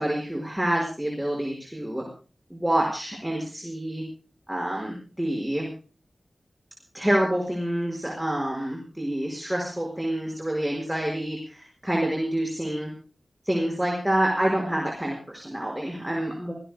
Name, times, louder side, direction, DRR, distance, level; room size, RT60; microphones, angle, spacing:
voice 1, 0.0-2.0 2.5-4.0 4.5-5.7 6.9-12.9 13.5-16.5, right 1 dB, 5° right, -1 dB, 5.5 m, -27 dB
28.5 x 18.5 x 2.2 m, 0.37 s
wide cardioid pair, 60°, 0 cm